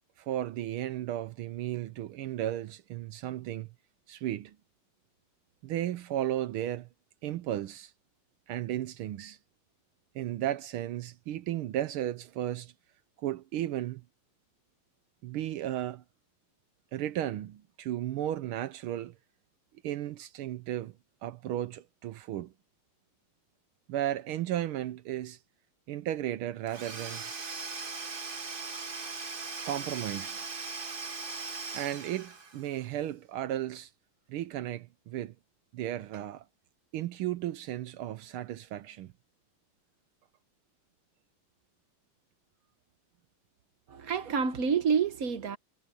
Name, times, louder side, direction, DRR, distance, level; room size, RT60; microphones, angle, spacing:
voice 1, 0.2-3.7 4.1-4.6 5.6-6.9 7.2-7.9 8.5-9.4 10.1-12.7 13.2-14.0 15.2-16.0 16.9-19.1 19.8-21.0 21.2-22.5 23.9-25.4 25.9-27.2 29.6-30.4 31.7-33.9 34.3-35.3 35.7-36.4 36.9-39.1, right 12 dB, 75° right, 1.6 m, -34 dB
Domestic sounds home sounds / Tools, 26.7-32.8, right 4 dB, 30° right, 1.2 m, -39 dB
voice 2, 43.9-45.6, right 6 dB, 50° right, 1.3 m, -28 dB
omnidirectional pair, 2.4 m